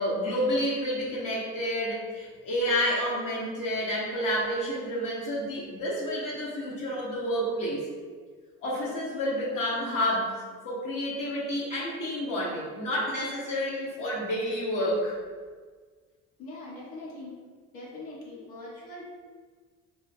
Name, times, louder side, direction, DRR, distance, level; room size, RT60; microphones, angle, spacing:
voice 1, 0.0-7.9 8.6-10.4 10.6-15.1, equal, 60° left, -6 dB, 1.0 m, -29 dB
voice 2, 16.4-17.3 17.7-19.1, left 2 dB, 80° left, -6 dB, 1.3 m, -42 dB
3.4 x 2.1 x 3.2 m, 1.5 s
supercardioid pair, 70°, 35 cm